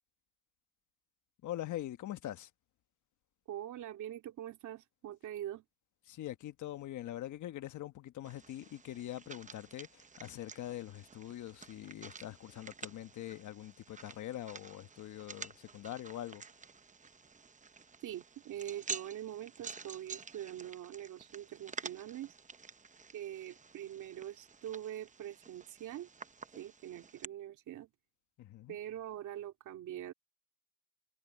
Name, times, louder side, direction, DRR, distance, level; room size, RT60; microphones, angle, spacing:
voice 1, 1.4-2.5 6.1-16.4 28.4-28.8, left 13 dB, 75° left, 1.3 m, -43 dB
voice 2, 3.5-5.6 18.0-22.3 23.1-26.1 26.6-27.9 28.7-30.1, right 11 dB, 75° right, 2.6 m, -43 dB
sound 1, 8.2-27.2, right 5 dB, 25° right, 0.9 m, -50 dB
cardioid pair, 90°, 30 cm